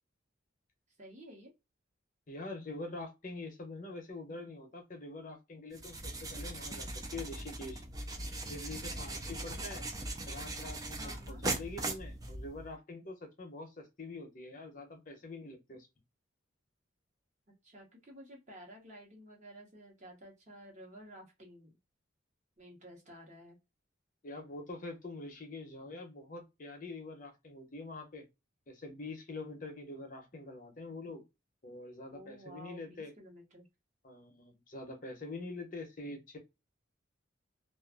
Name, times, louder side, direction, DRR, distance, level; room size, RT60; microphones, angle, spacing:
voice 1, 1.0-1.5 10.9-11.4 17.6-21.7 22.6-23.6 32.1-33.7, equal, 35° right, 1.0 m, -52 dB
voice 2, 2.3-7.8 8.5-9.9 10.3-11.0 11.3-15.9 24.2-28.3 28.7-31.2 31.6-33.1 34.0-36.4, left 2 dB, 40° left, 0.7 m, -45 dB
sound 1, 5.7-12.7, right 2 dB, 20° right, 0.3 m, -40 dB
2.5 x 2.4 x 2.3 m
head